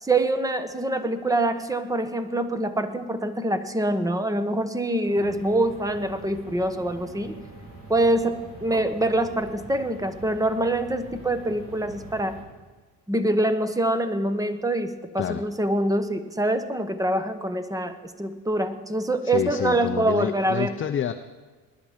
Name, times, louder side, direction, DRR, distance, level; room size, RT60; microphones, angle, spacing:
voice 1, 0.0-7.4 7.9-12.4 13.1-20.7, right 1 dB, 10° right, 10 dB, 1.0 m, -25 dB
sound 1, 5.0-12.4, right 1 dB, 35° right, 4.1 m, -44 dB
voice 2, 19.2-21.1, left 9 dB, 35° left, 8 dB, 0.6 m, -28 dB
20.0 x 10.5 x 5.1 m, 1.4 s
cardioid pair, 115°, 36 cm